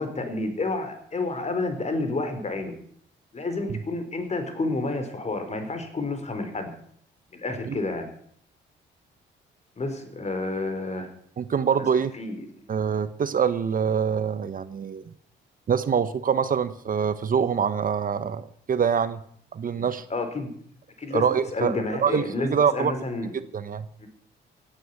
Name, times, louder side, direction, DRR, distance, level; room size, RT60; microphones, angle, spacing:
voice 1, 0.0-2.7 3.3-6.7 7.3-8.1 9.8-11.1 11.8-11.9 12.1-12.7 19.7-20.5 21.0-23.3 24.0-24.1, left 2 dB, 35° left, 7 dB, 4.2 m, -30 dB
voice 2, 11.4-12.1 12.7-15.0 15.7-19.2 19.5-20.0 21.1-22.9 23.5-23.9, right 7 dB, 45° right, 12 dB, 1.0 m, -25 dB
17.0 x 9.2 x 8.3 m, 0.63 s
cardioid pair, 90°, 20 cm